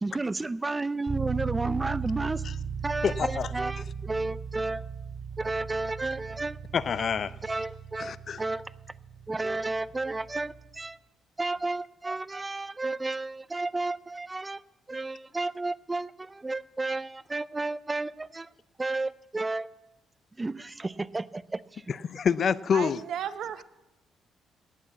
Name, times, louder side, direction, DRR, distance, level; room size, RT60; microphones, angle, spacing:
voice 1, 0.0-2.4 2.8-4.8 5.4-6.6 7.4-8.6 9.3-11.0 11.4-14.6 14.9-18.5 18.8-19.7 20.4-21.8, right 2 dB, 20° right, 17 dB, 0.4 m, -32 dB
sound 1, 1.1-10.8, right 6 dB, 35° right, 2.0 m, -37 dB
voice 2, 3.0-3.5 6.7-7.3 8.0-8.4 21.9-23.0, left 7 dB, 50° left, 18 dB, 0.4 m, -27 dB
voice 3, 22.7-23.6, right 9 dB, 75° right, 12 dB, 0.8 m, -34 dB
11.0 x 9.0 x 8.3 m, 0.97 s
cardioid pair, 90°, 0 cm